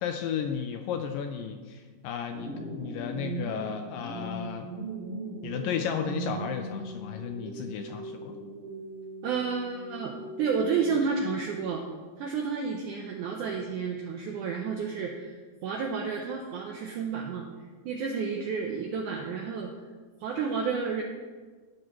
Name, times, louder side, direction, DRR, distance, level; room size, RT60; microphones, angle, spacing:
voice 1, 0.0-4.7 5.4-8.3, left 7 dB, 80° left, 6 dB, 2.0 m, -33 dB
sound 1, 2.3-11.3, right 2 dB, 65° right, 3.3 m, -39 dB
voice 2, 9.2-10.1 10.4-11.8 12.2-17.5 17.8-19.7 20.2-21.0, right 5 dB, 85° right, 1 dB, 1.8 m, -31 dB
16.0 x 6.4 x 3.0 m, 1.4 s
omnidirectional pair, 4.4 m